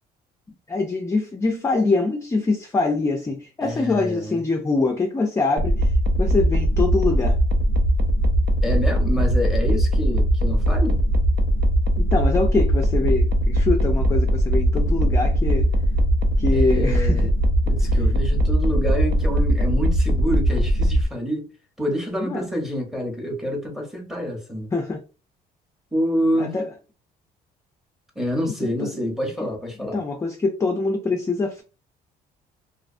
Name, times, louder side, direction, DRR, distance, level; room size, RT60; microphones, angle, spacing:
voice 1, 0.7-5.9 6.2-7.4 12.0-15.7 16.4-17.2 17.8-18.1 22.2-22.5 24.7-25.0 26.3-26.7 28.6-29.1 29.4-29.5 29.9-31.6, left 3 dB, 15° left, 0.4 m, -24 dB
voice 2, 3.6-4.4 8.6-11.0 16.5-17.3 17.7-21.5 21.8-24.7 25.9-26.5 28.2-30.0, equal, ahead, 0.7 m, -27 dB
sound 1, 5.6-21.0, equal, 90° right, 0.5 m, -20 dB
2.4 x 2.2 x 2.5 m
cardioid pair, 110°, 17 cm